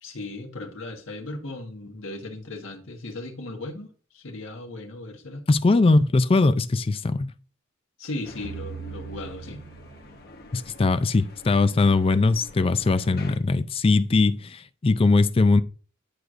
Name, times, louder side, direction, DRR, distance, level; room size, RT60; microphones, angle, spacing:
voice 1, 0.0-5.4 8.0-9.6, left 2 dB, 70° left, 1.5 m, -37 dB
voice 2, 5.5-7.3 10.5-15.6, left 3 dB, 30° left, 0.4 m, -20 dB
Dust ambiance prison, 8.2-13.4, left 2 dB, 50° left, 1.2 m, -47 dB
sound 1, 8.4-10.7, right 5 dB, 60° right, 0.4 m, -40 dB
10.0 x 4.6 x 2.5 m
head